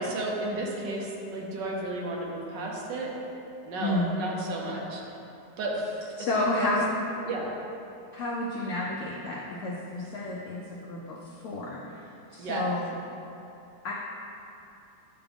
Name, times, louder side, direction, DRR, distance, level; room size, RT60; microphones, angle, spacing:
voice 1, 0.0-3.1 3.6-5.0 5.6-6.0 6.3-6.8 7.2-7.6 12.4-12.7, right 2 dB, 85° right, -2 dB, 1.5 m, -32 dB
voice 2, 3.8-4.2 6.2-6.9 8.1-10.6 10.9-11.2 11.4-12.0 12.3-13.0 13.8-13.9, left 2 dB, 65° left, -4 dB, 0.8 m, -30 dB
9.0 x 3.6 x 3.5 m, 2.8 s
omnidirectional pair, 1.9 m